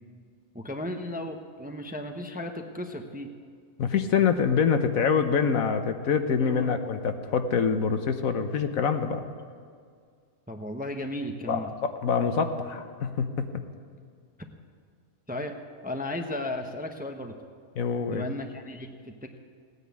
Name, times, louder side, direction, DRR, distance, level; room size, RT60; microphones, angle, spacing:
voice 1, 0.5-3.3 6.4-6.7 10.5-11.7 15.3-15.5 15.8-17.3 18.1-19.4, left 1 dB, 10° right, 4 dB, 0.7 m, -35 dB
voice 2, 3.8-9.2 11.5-13.5 17.7-18.3, left 6 dB, 75° left, 8 dB, 1.4 m, -25 dB
17.0 x 9.7 x 8.3 m, 2.1 s
omnidirectional pair, 1.5 m